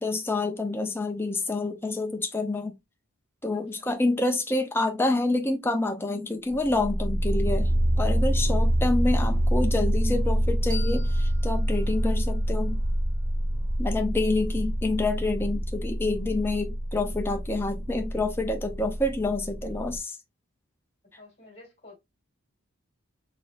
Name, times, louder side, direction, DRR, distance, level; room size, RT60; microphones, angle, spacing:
voice 1, 0.0-2.7 3.4-7.7 8.0-12.8 13.8-20.2, left 2 dB, 10° left, 0.5 m, -28 dB
voice 2, 3.5-3.9 21.2-22.0, left 2 dB, 30° left, 1.9 m, -51 dB
sound 1, 6.5-20.0, equal, 40° right, 1.0 m, -26 dB
sound 2, 10.7-13.5, left 3 dB, 15° right, 1.7 m, -46 dB
4.0 x 3.4 x 2.5 m
head